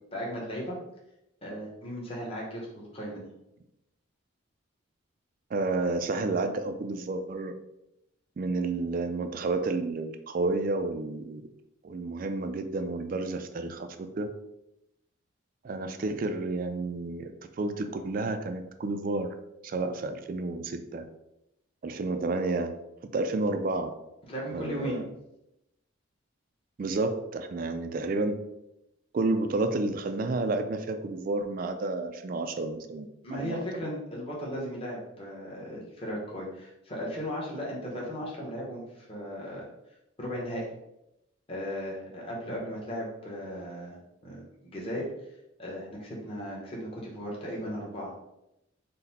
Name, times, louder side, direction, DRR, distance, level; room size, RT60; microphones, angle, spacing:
voice 1, 0.1-0.8 1.4-3.3 24.3-25.0 33.2-39.7 40.2-40.7 41.5-44.0 44.2-45.1 45.6-48.1, equal, 30° left, -4 dB, 1.0 m, -36 dB
voice 2, 5.5-7.5 8.4-11.5 11.8-14.3 15.6-17.3 17.6-19.3 19.6-21.0 21.8-22.8 23.0-23.9 24.5-25.1 26.8-28.4 29.1-33.6, right 3 dB, 45° right, 8 dB, 0.3 m, -30 dB
4.0 x 2.2 x 4.0 m, 0.87 s
head